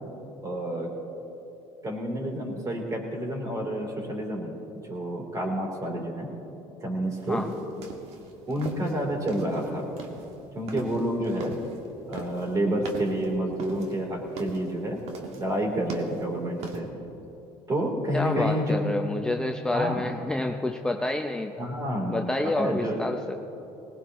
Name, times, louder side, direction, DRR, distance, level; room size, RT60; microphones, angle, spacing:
voice 1, 0.4-0.9 1.8-4.6 4.9-6.3 6.8-7.5 8.5-9.9 10.5-11.6 12.1-15.0 15.4-16.9 17.7-18.8 19.7-20.0 21.6-23.0, right 1 dB, 30° right, 0 dB, 3.5 m, -29 dB
sound 1, 7.1-16.8, right 3 dB, 65° right, 1.8 m, -41 dB
voice 2, 18.1-21.7 22.1-23.3, left 2 dB, 5° left, 3 dB, 0.6 m, -28 dB
19.5 x 19.0 x 3.1 m, 3.0 s
supercardioid pair, 100°, 12 cm